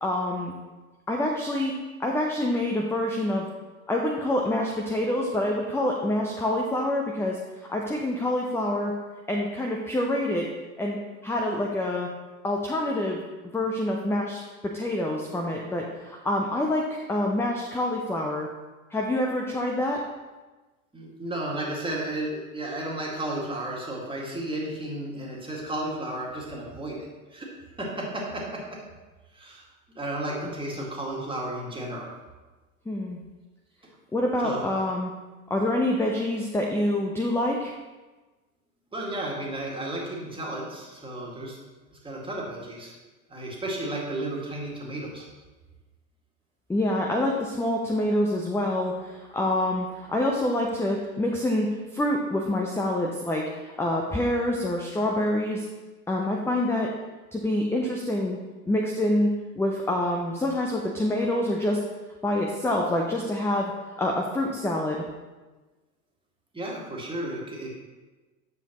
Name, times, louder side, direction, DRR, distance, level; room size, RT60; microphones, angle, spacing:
voice 1, 0.0-0.5 1.1-3.5 3.9-8.9 9.3-10.5 10.8-11.0 11.2-12.1 12.4-13.2 13.5-18.5 18.9-20.0 32.9-33.2 34.1-35.1 35.5-37.7 46.7-55.7 56.1-56.9 57.3-58.4 58.7-61.8 62.2-63.7 64.0-65.0, left 1 dB, 5° left, 0 dB, 0.6 m, -26 dB
voice 2, 20.9-27.1 27.3-27.5 27.8-28.4 29.3-29.6 30.0-32.1 34.4-34.6 38.9-41.6 41.9-42.9 43.3-45.2 66.5-67.7, right 1 dB, 10° right, -3 dB, 2.1 m, -33 dB
9.7 x 7.0 x 3.0 m, 1.2 s
figure-of-eight pair, 75°, 44 cm